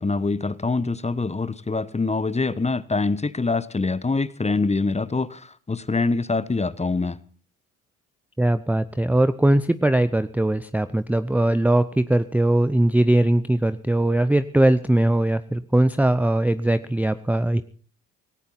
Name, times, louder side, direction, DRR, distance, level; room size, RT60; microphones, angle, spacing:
voice 1, 0.0-7.2, left 3 dB, 15° left, 1.2 m, -24 dB
voice 2, 8.4-17.6, right 1 dB, 5° right, 0.7 m, -20 dB
18.0 x 18.0 x 4.2 m
figure-of-eight pair, 50°, 42 cm